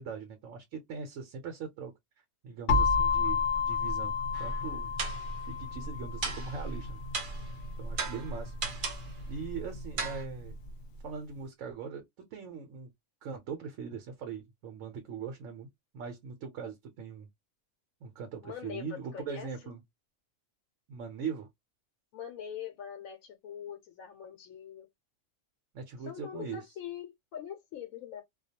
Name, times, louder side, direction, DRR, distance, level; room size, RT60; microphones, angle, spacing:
voice 1, 0.0-1.9 2.4-4.1 4.4-4.9 5.4-7.0 7.8-8.5 9.3-10.6 11.0-12.9 13.2-15.7 15.9-17.3 18.0-19.8 20.9-21.5 25.7-26.6, right 6 dB, 75° right, 1.0 m, -41 dB
sound 1, 2.7-10.5, left 4 dB, 65° left, 0.8 m, -32 dB
sound 2, 4.3-4.6 5.0-5.4 6.2-6.7 7.1-7.5 8.0-9.1 10.0-10.2, right 5 dB, 55° right, 0.6 m, -36 dB
voice 2, 18.4-19.5 22.1-24.9 26.0-28.2, left 9 dB, 90° left, 1.0 m, -43 dB
2.3 x 2.2 x 2.7 m
omnidirectional pair, 1.4 m